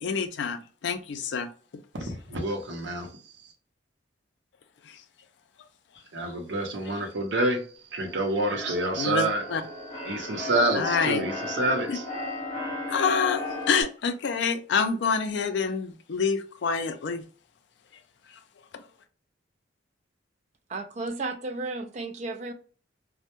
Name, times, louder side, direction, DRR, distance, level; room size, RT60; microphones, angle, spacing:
voice 1, 0.0-1.5 9.0-9.6 10.7-11.2 11.9-12.0 12.9-17.2, left 5 dB, 65° left, 0.4 m, -27 dB
voice 2, 1.9-3.1 6.1-7.6 7.9-9.4 10.1-12.0, right 2 dB, 65° right, 0.7 m, -27 dB
Keyboard (musical), 7.9-13.8, left 1 dB, 35° left, 0.9 m, -35 dB
voice 3, 20.7-22.5, right 3 dB, 40° right, 0.3 m, -33 dB
2.1 x 2.1 x 2.9 m
head